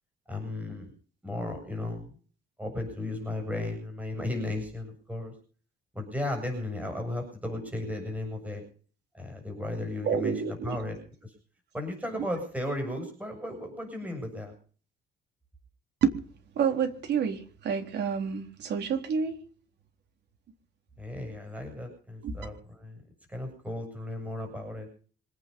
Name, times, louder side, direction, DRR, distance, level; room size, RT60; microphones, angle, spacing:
voice 1, 0.3-0.9 1.2-2.1 2.6-5.3 5.9-8.6 9.1-11.3 11.7-14.5 21.0-23.0 23.3-24.9, left 1 dB, 10° right, 4 dB, 7.6 m, -35 dB
voice 2, 10.1-10.8 16.0-16.1 16.6-19.4 22.2-22.4, right 7 dB, 70° right, 5 dB, 3.8 m, -28 dB
26.0 x 9.4 x 5.6 m, 0.42 s
cardioid pair, 110°, 18 cm